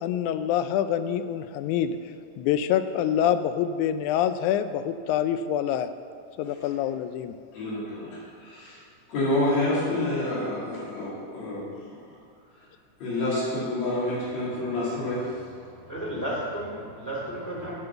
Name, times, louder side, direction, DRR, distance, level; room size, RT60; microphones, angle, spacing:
voice 1, 0.0-2.0 2.4-5.9 6.4-7.4, left 10 dB, 85° left, 11 dB, 2.0 m, -26 dB
voice 2, 7.5-8.1 8.4-8.8 9.1-11.6 13.0-15.2, left 1 dB, 65° left, -9 dB, 3.8 m, -28 dB
voice 3, 15.6-17.8, right 1 dB, 5° left, -6 dB, 1.7 m, -33 dB
7.6 x 7.1 x 6.9 m, 2.2 s
omnidirectional pair, 3.4 m